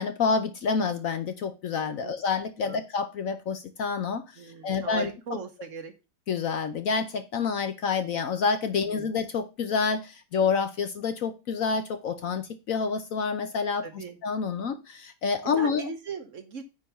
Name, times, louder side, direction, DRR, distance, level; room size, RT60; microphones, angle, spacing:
voice 1, 0.0-4.2 4.6-5.1 6.3-15.8, left 5 dB, 60° left, 1.0 m, -28 dB
voice 2, 4.4-5.9 8.7-9.1 13.8-14.2 15.6-16.6, right 5 dB, 50° right, 1.3 m, -38 dB
9.6 x 4.0 x 5.5 m
omnidirectional pair, 1.8 m